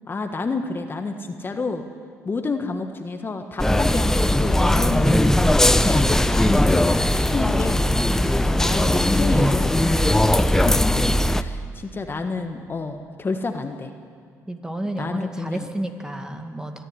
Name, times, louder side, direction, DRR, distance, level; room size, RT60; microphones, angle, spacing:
voice 1, 0.1-1.8 2.2-7.9 8.6-10.2 10.6-10.8 11.4-13.9 15.0-15.7, left 3 dB, 30° left, 6 dB, 1.5 m, -29 dB
sound 1, 3.6-11.4, left 1 dB, 5° left, 0.8 m, -19 dB
voice 2, 8.1-8.5 10.2-10.6 14.5-16.8, right 1 dB, 10° right, 5 dB, 2.1 m, -32 dB
24.0 x 11.0 x 9.8 m, 2.2 s
supercardioid pair, 75°, 7 cm